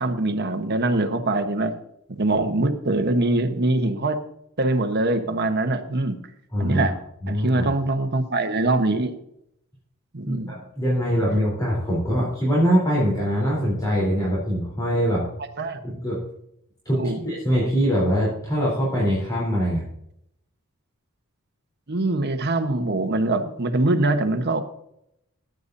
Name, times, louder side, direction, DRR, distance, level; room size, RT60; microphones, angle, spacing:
voice 1, 0.0-1.7 2.1-4.2 4.6-6.2 6.6-6.9 7.3-9.1 10.1-10.5 15.6-15.8 16.9-17.2 21.9-24.6, right 2 dB, 50° right, 7 dB, 1.1 m, -23 dB
voice 2, 6.5-6.9 7.2-7.7 10.3-15.3 15.8-16.2 16.9-19.8, equal, 15° left, -7 dB, 3.6 m, -23 dB
15.0 x 9.7 x 2.7 m, 0.77 s
head